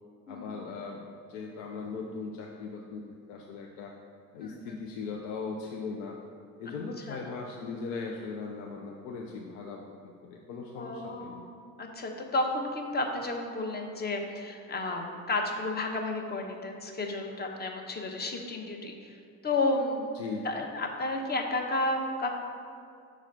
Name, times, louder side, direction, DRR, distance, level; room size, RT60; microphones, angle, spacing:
voice 1, 0.3-1.0 1.3-3.9 4.3-6.2 6.6-11.5 20.1-20.5, left 4 dB, 70° left, 0 dB, 0.6 m, -39 dB
voice 2, 4.4-4.8 7.1-7.2 10.8-11.4 11.8-19.2 19.4-20.1 20.4-22.3, left 2 dB, 25° left, 3 dB, 0.8 m, -32 dB
6.2 x 4.2 x 3.8 m, 2.4 s
figure-of-eight pair, 50°, 39 cm